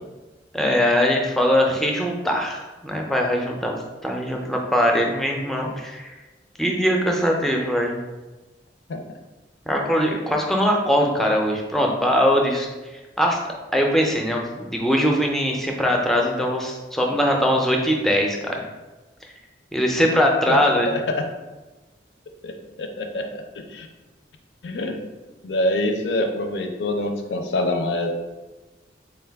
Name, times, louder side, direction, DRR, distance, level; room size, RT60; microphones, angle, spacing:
voice 1, 0.5-6.2 6.6-8.0 9.7-13.4 13.7-18.6 19.7-20.9, equal, ahead, 0 dB, 0.4 m, -21 dB
voice 2, 20.9-21.3 22.4-23.9 24.6-25.0 25.4-28.1, left 1 dB, 80° left, 5 dB, 0.5 m, -25 dB
4.0 x 2.2 x 3.4 m, 1.2 s
head